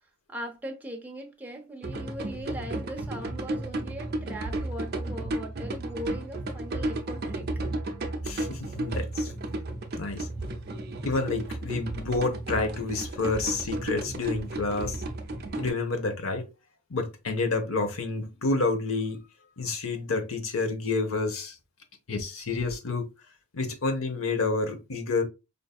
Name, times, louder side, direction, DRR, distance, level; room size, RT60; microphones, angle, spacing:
voice 1, 0.3-7.5, equal, 10° right, 0.7 m, -39 dB
sound 1, 1.8-15.7, right 2 dB, 45° right, 0.7 m, -33 dB
voice 2, 8.2-9.4 10.0-10.3 11.0-15.0 15.6-16.5 16.9-19.2 19.6-21.6 22.1-23.1 23.5-25.2, left 3 dB, 70° left, 0.8 m, -29 dB
5.1 x 2.6 x 2.3 m
head